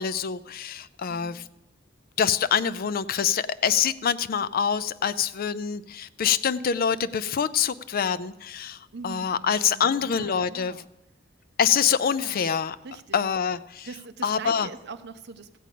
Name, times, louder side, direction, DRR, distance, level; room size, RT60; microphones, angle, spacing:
voice 1, 0.0-1.4 2.2-10.8 11.6-12.8 13.1-13.9 14.2-14.7, left 7 dB, 50° left, 15 dB, 0.4 m, -25 dB
voice 2, 1.1-1.4 8.9-10.9 12.2-12.4 12.8-13.3 13.8-15.6, right 4 dB, 60° right, 11 dB, 0.7 m, -42 dB
14.5 x 5.1 x 8.4 m, 0.91 s
head